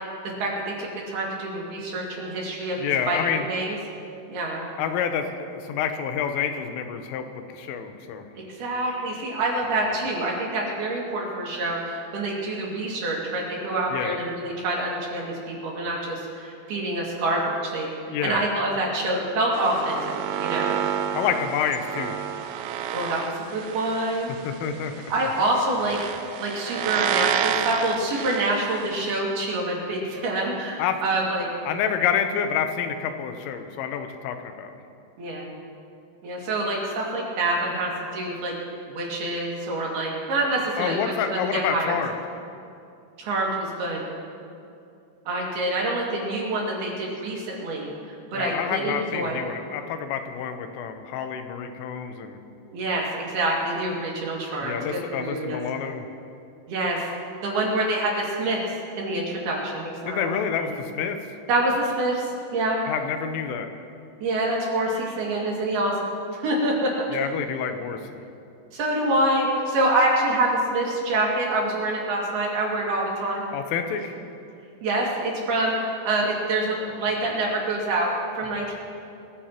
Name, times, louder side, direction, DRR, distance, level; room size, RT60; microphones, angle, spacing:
voice 1, 0.4-3.2 3.5-3.8 4.3-4.7 8.4-17.9 18.2-20.8 22.9-24.3 25.1-26.0 26.4-31.5 35.2-35.5 36.2-38.5 38.9-42.0 43.2-44.0 45.3-49.4 52.7-55.6 56.7-57.1 57.4-58.6 59.0-60.7 61.5-62.8 64.2-67.1 68.7-73.5 74.8-78.7, right 2 dB, 60° right, -3 dB, 3.9 m, -26 dB
voice 2, 2.8-3.5 4.8-7.3 7.5-8.3 13.9-14.2 18.1-18.4 21.2-22.2 24.5-24.9 30.8-31.0 31.7-34.7 40.8-42.1 48.3-52.4 54.6-56.1 60.1-61.2 62.9-63.7 67.1-68.2 73.5-74.2, left 8 dB, 90° left, 7 dB, 3.5 m, -28 dB
sound 1, 19.5-29.1, right 9 dB, 80° right, 2.8 m, -30 dB
24.0 x 15.0 x 3.0 m, 2.6 s
omnidirectional pair, 5.6 m